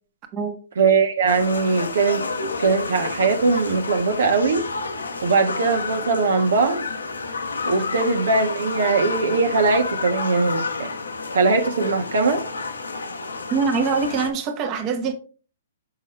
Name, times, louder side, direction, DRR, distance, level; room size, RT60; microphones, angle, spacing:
voice 1, 0.8-2.2 2.6-4.7 5.2-6.9 7.7-10.9 11.3-12.4, right 4 dB, 70° right, 1.3 m, -20 dB
sound 1, 1.3-14.3, left 3 dB, 90° left, 1.1 m, -30 dB
voice 2, 13.5-15.1, right 5 dB, 35° right, 1.3 m, -24 dB
6.3 x 6.1 x 3.2 m
hypercardioid pair, 125°, 0 cm